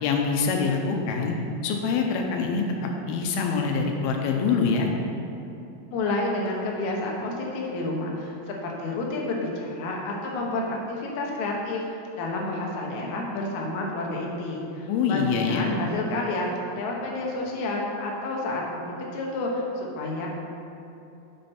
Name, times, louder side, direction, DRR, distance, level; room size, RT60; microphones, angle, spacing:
voice 1, 0.0-1.3 1.6-4.9 14.9-15.7, left 5 dB, 90° left, 2 dB, 2.7 m, -25 dB
voice 2, 5.9-11.8 12.2-20.3, left 2 dB, 65° left, -2 dB, 2.1 m, -30 dB
8.5 x 6.8 x 4.3 m, 2.8 s
omnidirectional pair, 4.3 m